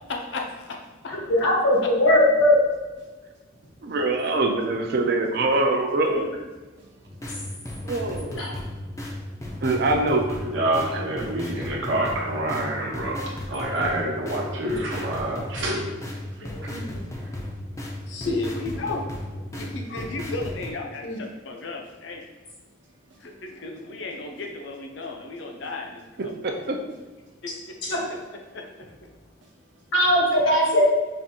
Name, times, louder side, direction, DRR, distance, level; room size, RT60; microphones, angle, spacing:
voice 1, 0.1-0.7 18.1-19.0 19.5-22.2 23.2-26.3 27.4-27.5 28.1-28.2 28.5-28.6, left 3 dB, 65° left, 0.5 m, -33 dB
voice 2, 1.1-2.6 8.4-8.5 16.7-16.8 21.0-21.2 27.5-27.6 27.8-28.0 29.9-30.9, left 1 dB, 80° left, 1.2 m, -20 dB
voice 3, 3.0-3.6 6.7-7.9 8.7-8.8 9.4-9.6 10.3-18.3 21.2-24.1 24.9-25.7 27.2-29.9, right 1 dB, 70° right, 0.9 m, -32 dB
voice 4, 3.8-6.3 7.8-8.3 9.6-10.2 26.4-26.8, right 2 dB, 50° right, 0.4 m, -23 dB
sound 1, 7.1-20.7, left 1 dB, 15° left, 0.4 m, -35 dB
4.9 x 2.5 x 2.7 m
head